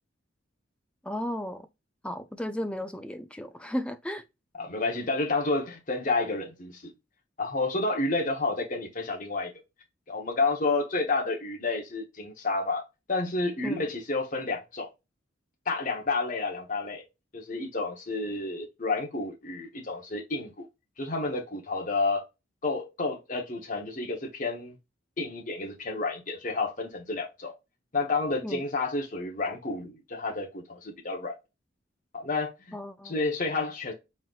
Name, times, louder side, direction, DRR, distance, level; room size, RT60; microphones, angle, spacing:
voice 1, 1.0-1.7 2.0-4.2 13.6-13.9 28.4-28.6 32.7-33.2, left 1 dB, 5° left, 0.4 m, -34 dB
voice 2, 4.6-6.9 7.4-9.5 10.1-12.8 13.1-14.9 15.7-17.0 17.3-20.7 21.0-22.2 22.6-24.8 25.2-27.5 27.9-31.3 32.1-32.8 33.0-33.9, left 3 dB, 40° left, 1.0 m, -30 dB
4.2 x 3.8 x 2.3 m
head